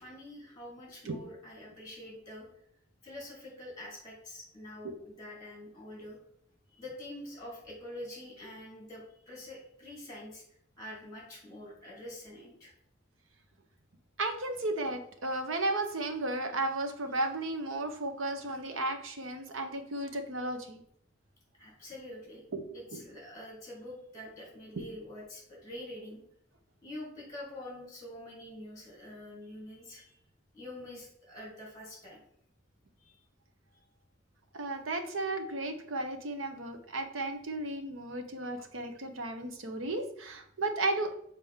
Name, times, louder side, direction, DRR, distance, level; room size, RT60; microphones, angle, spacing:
voice 1, 0.0-2.5 3.0-6.2 6.7-10.4 10.8-12.7 21.5-22.4 22.7-26.2 26.8-30.2 30.5-32.2 33.0-33.2, left 1 dB, 20° left, -3 dB, 2.7 m, -46 dB
voice 2, 14.2-20.8 22.5-22.6 22.9-23.0 24.8-24.9 34.5-41.1, right 2 dB, 85° right, 5 dB, 0.9 m, -34 dB
7.2 x 4.1 x 3.6 m, 0.70 s
head